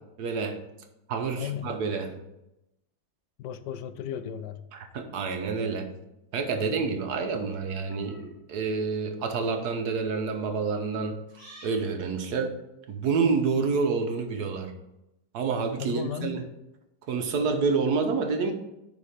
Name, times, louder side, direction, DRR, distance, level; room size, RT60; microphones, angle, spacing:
voice 1, 0.2-0.6 1.1-2.1 4.7-5.9 6.3-11.2 11.6-12.5 12.9-14.7 15.3-16.4 17.1-18.5, right 4 dB, 70° right, 6 dB, 1.4 m, -28 dB
voice 2, 1.4-1.7 3.4-4.7 15.8-16.4, left 9 dB, 85° left, 11 dB, 1.2 m, -35 dB
sound 1, 7.4-8.3 9.2-9.5 11.3-11.8, right 1 dB, 15° right, 2.4 m, -51 dB
9.8 x 4.1 x 4.9 m, 0.90 s
omnidirectional pair, 1.8 m